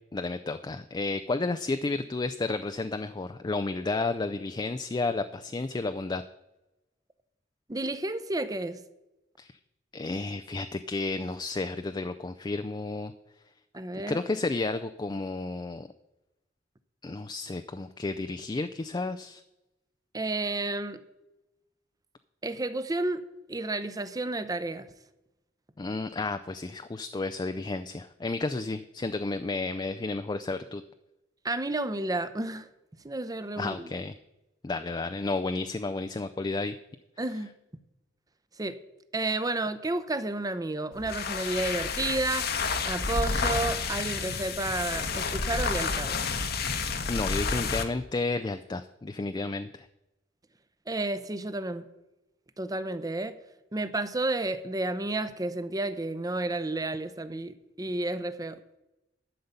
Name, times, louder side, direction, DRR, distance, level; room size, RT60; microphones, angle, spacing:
voice 1, 0.1-6.2 9.4-9.6 9.9-13.1 14.1-15.9 17.0-19.4 25.8-30.8 33.6-34.1 34.6-36.7 47.1-49.9, left 3 dB, 25° left, 9 dB, 0.4 m, -32 dB
voice 2, 7.7-8.8 13.7-14.3 20.1-21.0 22.4-23.2 23.5-24.9 31.4-32.7 33.0-33.9 37.2-37.5 38.6-38.8 39.1-42.5 42.9-46.2 50.9-51.8 52.6-53.3 53.7-58.6, right 2 dB, 20° right, 12 dB, 0.7 m, -31 dB
sound 1, 40.9-47.9, left 4 dB, 55° left, 1.1 m, -30 dB
12.0 x 5.5 x 8.0 m, 0.94 s
head